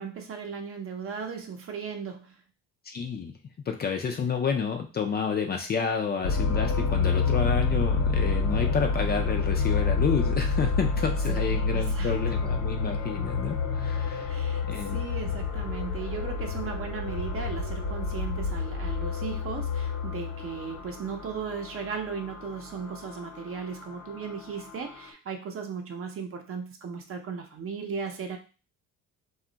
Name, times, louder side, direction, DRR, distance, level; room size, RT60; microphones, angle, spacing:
voice 1, 0.0-2.4 11.3-12.2 14.3-28.4, right 6 dB, 45° right, 4 dB, 0.7 m, -36 dB
voice 2, 2.9-3.3 3.7-14.3 14.7-15.0, left 6 dB, 30° left, 4 dB, 0.4 m, -30 dB
sound 1, 6.2-25.1, left 4 dB, 80° left, 1.0 m, -29 dB
2.3 x 2.1 x 3.8 m, 0.34 s
cardioid pair, 110°, 32 cm